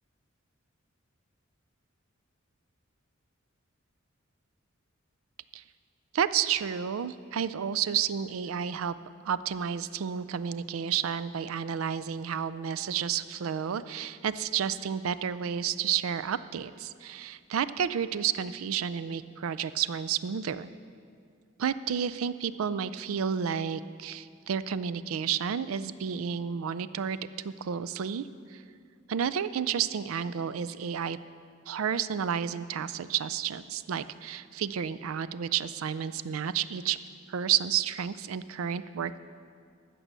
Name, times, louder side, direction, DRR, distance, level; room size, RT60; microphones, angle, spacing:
voice 1, 6.1-8.9 9.2-20.7 21.6-27.2 27.4-28.6 29.1-31.2 31.7-37.0 37.3-39.2, right 8 dB, 85° right, 14 dB, 0.4 m, -31 dB
15.0 x 6.2 x 6.7 m, 2.2 s
head